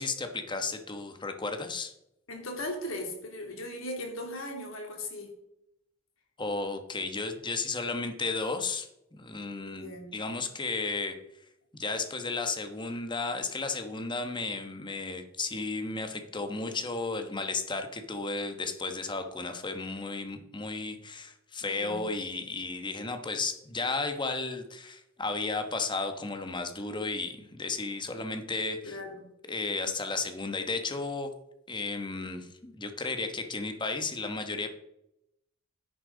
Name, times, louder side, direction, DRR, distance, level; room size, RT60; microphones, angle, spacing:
voice 1, 0.0-1.9 6.4-11.2 11.7-29.0 29.4-31.3 31.7-34.7, left 3 dB, 25° left, 7 dB, 1.2 m, -34 dB
voice 2, 2.3-5.3 9.6-10.1 21.6-22.0 28.8-29.2, left 1 dB, 80° left, 2 dB, 2.9 m, -38 dB
10.5 x 10.0 x 4.0 m, 0.82 s
head